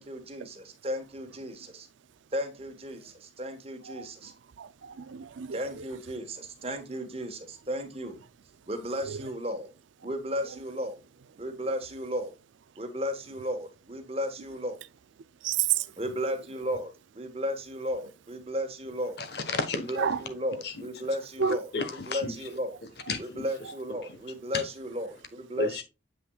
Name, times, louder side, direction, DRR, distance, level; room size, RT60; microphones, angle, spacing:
voice 1, 0.0-1.9 2.3-4.3 5.5-8.2 8.7-9.7 10.0-11.0 11.4-12.3 12.8-14.8 16.0-19.2 19.7-21.7 22.1-22.8 23.2-25.8, equal, 30° right, 1.2 m, -34 dB
voice 2, 4.6-5.8 9.0-9.2 15.4-15.9 20.0-20.2 21.4-21.6, right 8 dB, 75° right, 0.4 m, -30 dB
voice 3, 19.2-20.0 20.6-21.1 21.4-22.3 23.1-23.5 24.5-24.6 25.6-25.8, left 3 dB, 55° left, 1.1 m, -33 dB
7.7 x 5.9 x 2.3 m
head